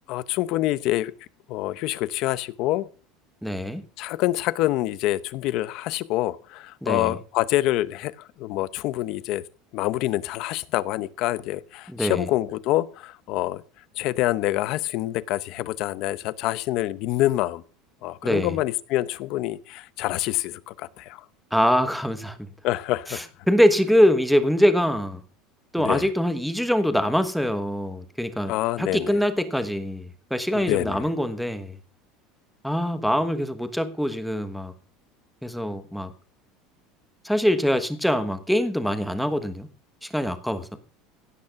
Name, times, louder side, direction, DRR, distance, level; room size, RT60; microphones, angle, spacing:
voice 1, 0.1-1.1 1.5-2.9 4.0-9.4 9.7-13.6 14.0-17.6 18.0-21.2 22.6-23.2 25.8-26.0 28.5-29.2 30.5-31.1, left 16 dB, 45° left, 17 dB, 0.8 m, -26 dB
voice 2, 3.4-3.8 6.8-7.2 11.9-12.3 18.2-18.6 21.5-22.4 23.1-25.2 25.7-28.5 28.8-31.8 32.6-34.7 35.4-36.1 37.2-39.7 40.0-40.8, equal, ahead, 10 dB, 1.2 m, -23 dB
16.5 x 9.3 x 5.8 m, 0.37 s
cardioid pair, 180°, 0 cm